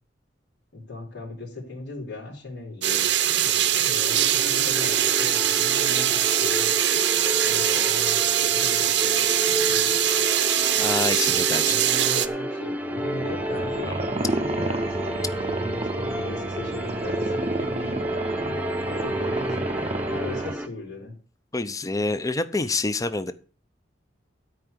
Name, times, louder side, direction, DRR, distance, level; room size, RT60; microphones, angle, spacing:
voice 1, 0.7-6.7 7.4-10.0 11.5-15.2 15.5-18.6 18.9-21.2, left 3 dB, 75° left, -5 dB, 4.0 m, -38 dB
sound 1, 2.8-12.3, right 11 dB, 70° right, 0.8 m, -22 dB
sound 2, 3.9-20.7, equal, 10° right, 0.9 m, -31 dB
voice 2, 10.8-11.7 13.8-13.9 21.5-23.3, left 3 dB, 20° left, 12 dB, 0.6 m, -27 dB
sound 3, 12.8-20.5, right 2 dB, 35° right, 0.6 m, -31 dB
13.0 x 4.8 x 8.0 m, 0.40 s
head